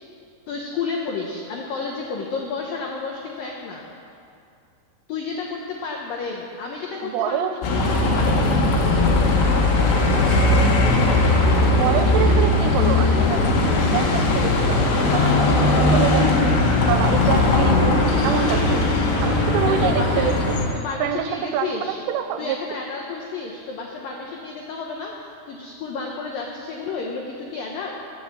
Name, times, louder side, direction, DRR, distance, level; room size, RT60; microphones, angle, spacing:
voice 1, 0.5-3.8 5.1-8.7 19.6-20.3 20.7-22.0 22.4-27.9, left 4 dB, 80° left, 0 dB, 2.0 m, -31 dB
voice 2, 7.0-7.5 11.7-18.9 19.2-20.6 21.0-22.6, right 9 dB, 85° right, 8 dB, 3.2 m, -27 dB
Bus, 7.6-20.7, left 2 dB, 65° left, 3.6 m, -19 dB
Bowed string instrument, 17.5-21.6, right 7 dB, 60° right, 1.8 m, -32 dB
16.5 x 7.8 x 7.6 m, 2.5 s
omnidirectional pair, 5.6 m